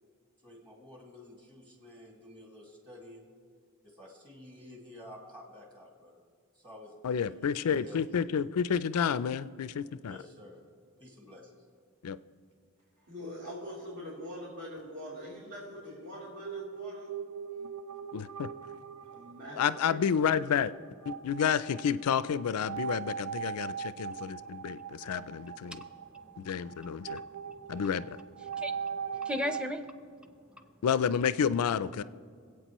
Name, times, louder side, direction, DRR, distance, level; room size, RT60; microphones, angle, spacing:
voice 1, 0.4-3.2 3.8-6.1 6.5-8.0 10.1-10.6 11.0-11.5, left 1 dB, 20° right, -1 dB, 2.1 m, -51 dB
voice 2, 7.0-10.2 12.0-12.2 18.1-18.5 19.6-20.7 21.1-25.8 26.4-27.2 27.7-28.2 30.8-32.0, left 7 dB, 85° left, 16 dB, 0.4 m, -30 dB
voice 3, 13.0-17.1 19.1-20.2, equal, 65° right, -10 dB, 3.4 m, -43 dB
sound 1, 16.4-29.7, right 7 dB, 80° right, 0.4 m, -41 dB
voice 4, 24.1-24.5 25.7-26.5 27.0-27.1 27.5-27.6 28.6-28.7 29.2-29.8, left 1 dB, 5° right, 7 dB, 0.7 m, -37 dB
25.0 x 8.5 x 3.0 m, 2.1 s
head